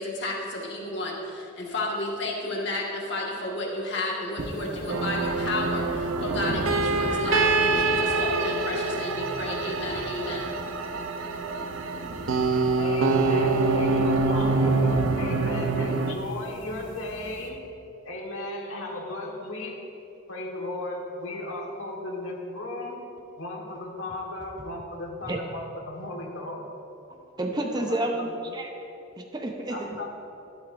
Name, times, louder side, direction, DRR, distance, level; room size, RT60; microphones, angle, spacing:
voice 1, 0.0-10.6, left 2 dB, 55° left, -2 dB, 1.7 m, -32 dB
sound 1, 4.4-17.5, right 1 dB, 60° right, 1.1 m, -38 dB
sound 2, 4.9-16.1, right 3 dB, 80° right, 0.6 m, -25 dB
voice 2, 12.8-17.6 18.0-19.8 20.3-23.0 23.4-26.6 27.8-28.3 29.7-30.1, left 2 dB, 75° left, 0 dB, 1.5 m, -35 dB
voice 3, 27.3-28.8 29.2-30.0, right 1 dB, 20° right, 3 dB, 0.6 m, -30 dB
12.0 x 11.5 x 2.6 m, 2.8 s
head